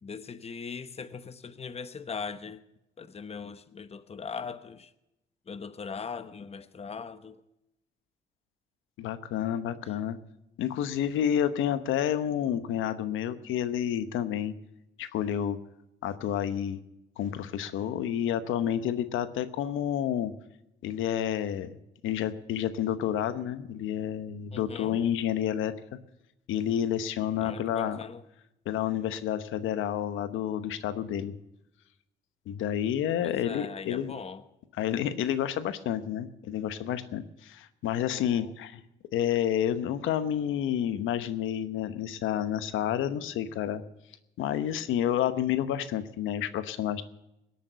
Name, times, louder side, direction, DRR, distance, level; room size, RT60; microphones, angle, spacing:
voice 1, 0.0-2.6 3.0-4.9 5.5-7.4 24.5-25.0 27.4-28.2 33.2-34.4 38.1-38.5, left 5 dB, 30° left, 0.9 m, -40 dB
voice 2, 9.0-10.2 10.6-14.5 15.0-15.6 16.0-16.8 17.2-20.3 20.8-21.8 22.0-25.7 26.5-28.0 28.6-31.3 32.5-34.2 34.7-38.8 39.1-43.8 44.4-47.0, left 10 dB, 85° left, 1.0 m, -29 dB
19.0 x 8.6 x 6.7 m
cardioid pair, 90°, 20 cm